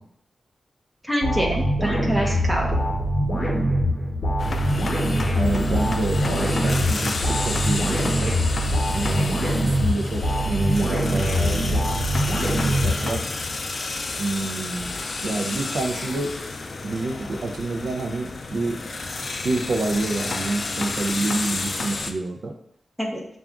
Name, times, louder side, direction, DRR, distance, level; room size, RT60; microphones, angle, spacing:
voice 1, 1.0-2.7 9.1-9.3 23.0-23.2, equal, 5° right, -1 dB, 1.0 m, -26 dB
sound 1, 1.2-13.5, equal, 35° left, 1.1 m, -23 dB
sound 2, 4.4-22.1, left 3 dB, 50° left, 0.3 m, -31 dB
voice 2, 5.3-8.4 8.9-11.9 12.4-13.2 14.2-16.3 16.8-18.8 19.4-22.5, right 2 dB, 70° right, 3 dB, 0.5 m, -28 dB
6.8 x 2.4 x 2.4 m, 0.72 s
wide cardioid pair, 90°, 0 cm